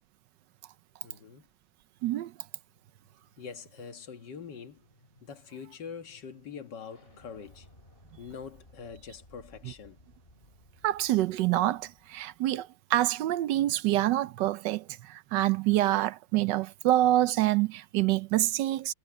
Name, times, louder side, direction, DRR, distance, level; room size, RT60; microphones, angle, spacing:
voice 1, 1.0-1.5 3.4-4.9 5.2-7.7 8.2-10.0, left 6 dB, 75° left, 2.1 m, -44 dB
sound 1, 2.2-12.4, left 1 dB, 30° left, 5.2 m, -60 dB
voice 2, 10.8-18.9, right 14 dB, 80° right, 1.3 m, -26 dB
omnidirectional pair, 1.9 m